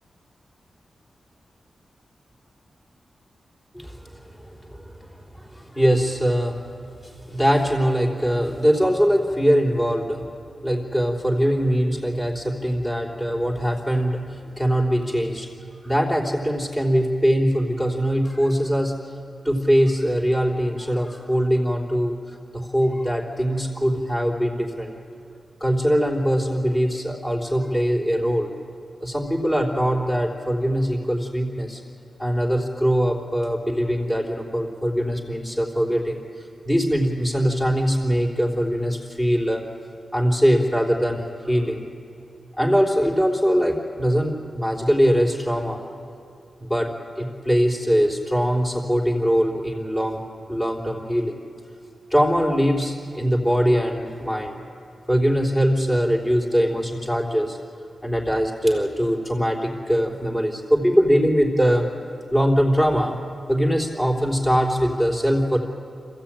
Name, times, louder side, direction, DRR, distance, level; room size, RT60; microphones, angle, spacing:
voice 1, 3.7-10.2 10.6-15.5 15.8-18.9 19.4-24.9 25.6-28.5 29.0-31.8 32.2-36.2 36.6-39.6 40.1-41.9 42.6-45.8 46.6-46.9 47.2-50.2 50.5-51.4 52.1-54.6 55.1-57.6 58.0-61.9 62.3-63.2 63.5-65.6, equal, 15° left, -1 dB, 3.5 m, -22 dB
26.5 x 16.0 x 8.9 m, 2.6 s
wide cardioid pair, 115°, 0 cm